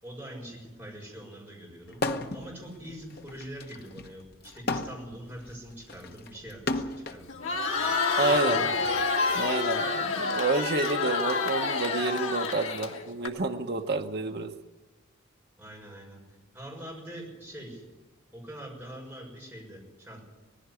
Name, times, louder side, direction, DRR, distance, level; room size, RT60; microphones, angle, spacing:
voice 1, 0.0-2.0 2.3-7.9 8.4-9.1 15.6-17.8 18.3-20.2, right 1 dB, 10° right, -2 dB, 6.2 m, -44 dB
sound 1, 1.9-2.5 2.9-7.2 8.1-9.8, left 2 dB, 45° left, 1.2 m, -34 dB
Crowd, 7.3-13.3, left 4 dB, 70° left, 2.5 m, -28 dB
voice 2, 8.2-8.6 9.3-14.5, right 3 dB, 50° right, 4 dB, 1.0 m, -29 dB
19.5 x 15.5 x 9.9 m, 1.2 s
head